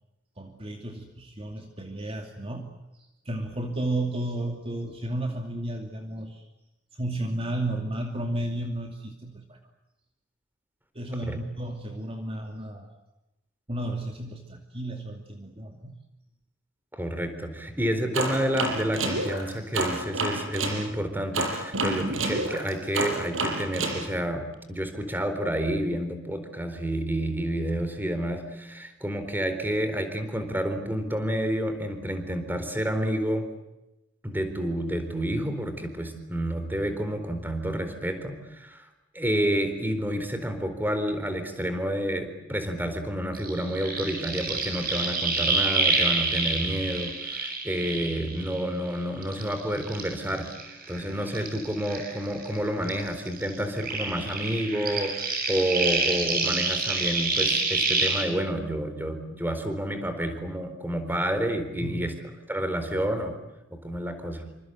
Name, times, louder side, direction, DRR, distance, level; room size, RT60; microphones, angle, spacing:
voice 1, 0.4-2.7 3.0-6.5 6.9-9.6 10.9-13.0 13.7-16.0 61.8-62.0, right 1 dB, 30° right, 3 dB, 2.7 m, -33 dB
voice 2, 17.0-33.5 34.2-38.9 39.1-62.2 62.5-63.4 63.7-64.5, equal, 10° right, 8 dB, 4.1 m, -29 dB
sound 1, 18.1-20.8 21.3-24.0, right 2 dB, 75° right, 6.9 m, -28 dB
sound 2, 43.3-48.9 49.2-52.6 52.8-58.2, right 4 dB, 50° right, 7.7 m, -28 dB
28.0 x 26.5 x 8.0 m, 0.95 s
head